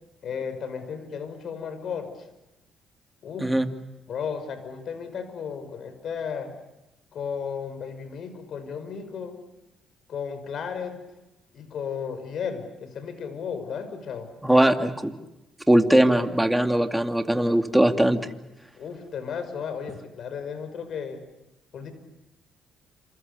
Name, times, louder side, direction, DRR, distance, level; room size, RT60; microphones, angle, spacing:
voice 1, 0.2-2.3 3.2-3.6 4.1-6.5 7.1-9.4 10.1-11.0 11.5-14.3 18.7-21.2 21.7-21.9, left 6 dB, 65° left, 10 dB, 5.6 m, -34 dB
voice 2, 14.4-15.1 15.7-18.3, right 1 dB, 5° right, 6 dB, 2.3 m, -20 dB
28.5 x 27.5 x 6.9 m, 0.93 s
cardioid pair, 90°, 0 cm